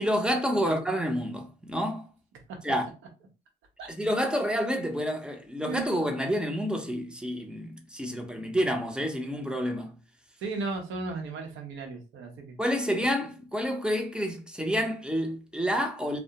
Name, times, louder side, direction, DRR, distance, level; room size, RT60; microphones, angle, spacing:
voice 1, 0.0-2.1 2.6-2.9 4.0-10.0 12.6-16.2, equal, 5° right, 0.5 m, -29 dB
voice 2, 10.4-12.6, right 3 dB, 80° right, 0.8 m, -35 dB
2.3 x 2.1 x 2.8 m
cardioid pair, 90°, 20 cm